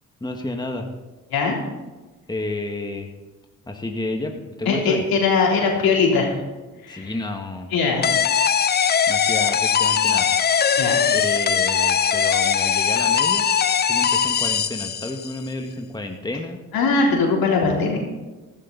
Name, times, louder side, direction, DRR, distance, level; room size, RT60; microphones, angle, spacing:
voice 1, 0.2-0.9 2.3-3.1 3.7-5.1 6.9-7.7 9.1-10.3 11.1-13.5 13.8-16.6, left 2 dB, 10° left, 3 dB, 1.7 m, -30 dB
voice 2, 4.7-6.3 6.8-7.1 7.7-8.3 10.8-11.0 11.8-12.1 16.7-18.0, left 4 dB, 70° left, -1 dB, 3.6 m, -21 dB
sound 1, 8.0-15.4, left 7 dB, 30° left, 0.5 m, -20 dB
14.5 x 13.0 x 4.0 m, 1.2 s
supercardioid pair, 55°, 37 cm